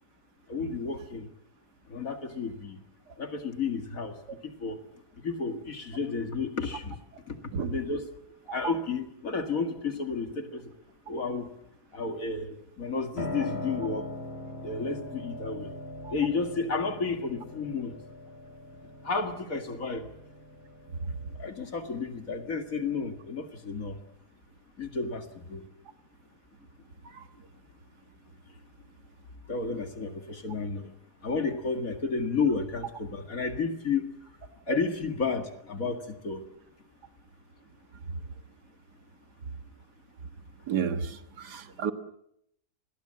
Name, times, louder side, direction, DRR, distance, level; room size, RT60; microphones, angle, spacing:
voice 1, 0.5-1.3 1.9-2.8 3.2-4.2 4.4-4.8 5.2-7.0 7.3-7.4 7.6-8.1 8.5-10.7 11.1-11.5 11.9-14.1 14.6-15.7 16.1-18.0 19.0-20.1 21.4-24.0 24.8-25.6 29.5-30.9 31.2-34.1 34.7-36.4, left 4 dB, 55° left, 7 dB, 2.3 m, -32 dB
Piano, 13.2-23.1, left 1 dB, 35° left, 3.8 m, -41 dB
voice 2, 40.7-41.9, right 7 dB, 80° right, 9 dB, 2.0 m, -31 dB
30.0 x 21.0 x 7.6 m, 0.77 s
omnidirectional pair, 1.7 m